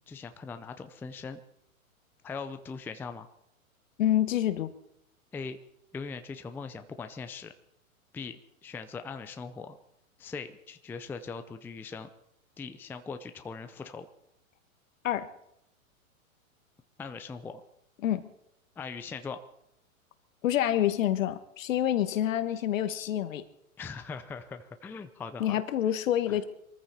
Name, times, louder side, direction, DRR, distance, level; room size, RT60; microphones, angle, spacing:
voice 1, 0.1-1.4 2.2-3.3 5.3-5.6 5.9-7.5 8.1-9.8 10.2-12.1 12.6-14.1 17.0-17.6 18.8-19.4 23.8-25.6 26.3-26.4, left 5 dB, 5° left, 8 dB, 0.5 m, -40 dB
voice 2, 4.0-4.7 15.0-15.3 18.0-18.3 20.4-23.5 25.4-26.4, left 11 dB, 65° left, 11 dB, 1.7 m, -27 dB
23.5 x 14.5 x 4.3 m, 0.78 s
hypercardioid pair, 125°, 42 cm